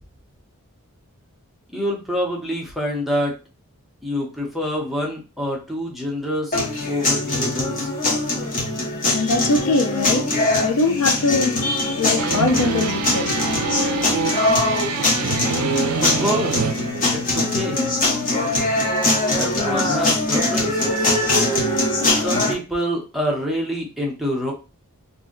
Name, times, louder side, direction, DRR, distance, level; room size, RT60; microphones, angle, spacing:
voice 1, 1.7-3.3 4.0-6.6 6.9-7.9 16.0-16.7 17.1-17.9 19.3-21.1 22.1-24.5, equal, ahead, -1 dB, 0.6 m, -26 dB
sound 1, 6.5-22.5, left 2 dB, 35° left, 0.9 m, -22 dB
voice 2, 9.1-10.3 10.6-13.4, left 3 dB, 85° left, 7 dB, 0.5 m, -22 dB
sound 2, 12.2-17.2, right 5 dB, 75° right, 0.4 m, -26 dB
2.5 x 2.1 x 3.7 m, 0.31 s
head